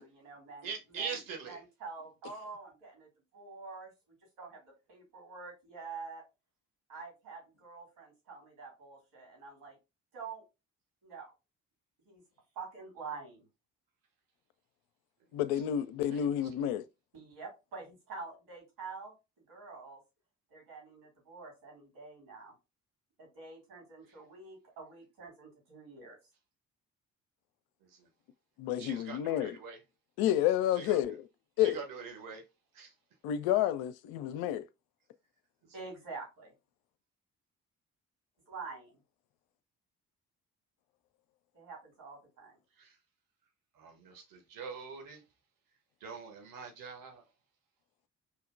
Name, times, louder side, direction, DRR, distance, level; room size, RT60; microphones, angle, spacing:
voice 1, 0.0-3.9 4.4-6.2 6.9-9.8 10.1-10.4 11.0-11.3 12.1-12.2 12.6-13.5 17.1-20.0 20.5-22.5 23.2-26.2 35.7-36.5 38.5-39.0 41.5-42.6, right 4 dB, 65° right, 2.3 m, -47 dB
voice 2, 0.6-1.6 28.8-29.8 30.8-31.0 31.6-32.4 32.7-32.9 42.8-42.9 43.8-45.2 46.0-47.2, right 6 dB, 50° right, 1.2 m, -43 dB
voice 3, 15.3-16.8 28.6-29.6 30.2-31.3 31.6-31.8 33.2-34.7, left 11 dB, 60° left, 0.5 m, -30 dB
4.9 x 2.8 x 2.4 m
figure-of-eight pair, 40°, 43 cm